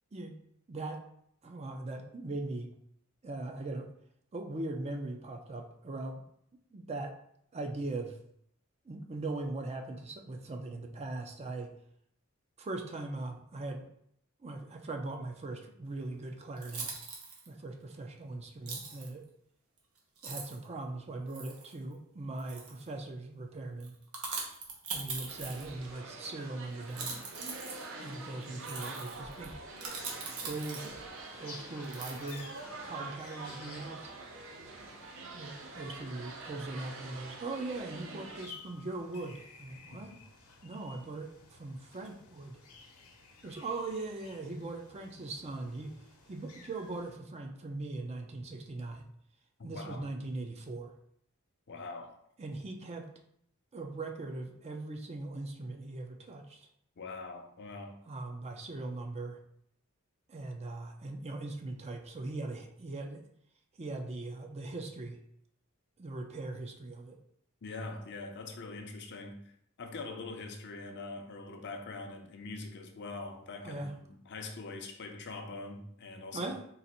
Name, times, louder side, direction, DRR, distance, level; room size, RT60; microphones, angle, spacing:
voice 1, 0.7-1.0 1.4-2.8 3.2-3.9 4.3-6.2 6.7-7.2 7.5-8.2 8.8-11.8 12.6-13.9 14.4-16.9 17.5-19.3 20.2-24.0 24.9-27.2 28.0-29.5 30.4-31.0 31.4-32.5 32.8-34.1 35.3-40.1 40.6-42.6 43.4-46.0 46.2-49.1 49.6-50.9 52.4-53.1 53.7-56.7 58.1-59.4 60.3-63.2 63.8-65.2 66.0-67.2 73.6-73.9 76.3-76.6, right 2 dB, 30° right, 3 dB, 0.5 m, -40 dB
sound 1, 16.0-16.1 16.6-17.5 18.7-19.1 19.8-19.9 20.2-20.7 21.3-21.7 22.4-22.9 23.8-25.9 26.8-31.1 31.8-32.6, right 4 dB, 85° right, 1.0 m, -42 dB
sound 2, 25.3-38.5, right 3 dB, 65° right, 0.7 m, -46 dB
sound 3, 29.9-47.2, left 4 dB, 80° left, 0.8 m, -54 dB
voice 2, 51.7-52.2 57.0-58.0 67.6-69.5 69.8-76.7, left 3 dB, 55° left, 4 dB, 0.6 m, -43 dB
4.0 x 2.5 x 4.2 m, 0.70 s
head